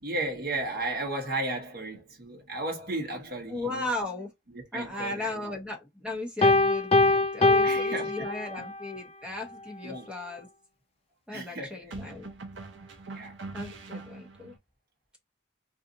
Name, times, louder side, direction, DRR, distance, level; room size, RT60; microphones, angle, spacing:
voice 1, 0.0-3.9 4.5-5.5 7.6-8.3 8.6-8.7 9.8-10.1 11.3-11.9 13.1-13.3, right 2 dB, 50° right, 1.2 m, -34 dB
voice 2, 3.5-4.3 4.7-10.5 11.3-12.3 13.5-14.6, left 2 dB, 5° right, 0.9 m, -36 dB
Piano, 6.4-8.8, left 2 dB, 30° left, 0.3 m, -23 dB
sound 1, 9.2-9.5 11.9-14.6, right 3 dB, 70° right, 0.8 m, -42 dB
2.7 x 2.5 x 3.8 m
head